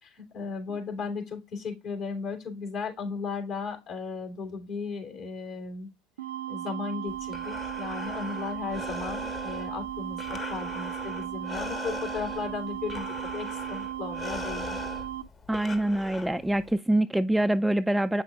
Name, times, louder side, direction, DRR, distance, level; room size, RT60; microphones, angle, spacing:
voice 1, 0.0-5.9 6.5-14.8, left 5 dB, 55° left, 3.1 m, -36 dB
sound 1, 6.2-15.2, right 12 dB, 85° right, 0.4 m, -36 dB
Breathing, 7.1-16.7, left 3 dB, 30° left, 1.3 m, -40 dB
voice 2, 15.5-18.2, right 1 dB, 5° right, 0.3 m, -25 dB
8.1 x 5.8 x 2.3 m
hypercardioid pair, 80°, 0 cm